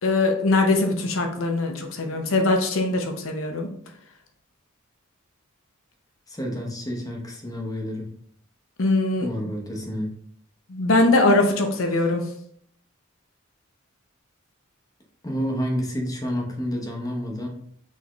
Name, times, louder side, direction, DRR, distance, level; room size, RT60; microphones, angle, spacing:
voice 1, 0.0-3.7 8.8-9.3 10.7-12.2, left 2 dB, 75° left, 4 dB, 0.8 m, -21 dB
voice 2, 6.3-8.1 9.2-10.1 15.2-17.5, equal, 20° left, 0 dB, 0.9 m, -29 dB
4.1 x 3.6 x 3.0 m, 0.63 s
head